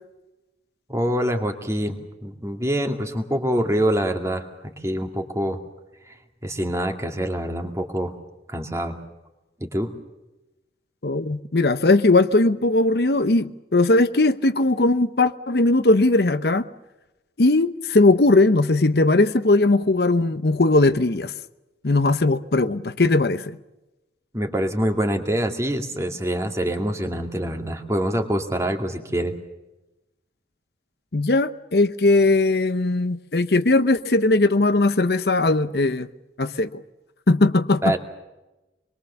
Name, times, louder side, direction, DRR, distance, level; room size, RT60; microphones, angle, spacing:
voice 1, 0.9-5.6 6.1-6.2 6.4-8.1 8.5-9.0 9.6-9.9 24.3-29.3 37.8-38.0, equal, 15° right, 2.4 m, -25 dB
voice 2, 11.0-16.7 17.4-21.3 21.8-23.6 31.1-36.1 36.4-36.8 37.3-37.9, left 2 dB, 60° left, 0.9 m, -19 dB
26.5 x 22.5 x 7.0 m
head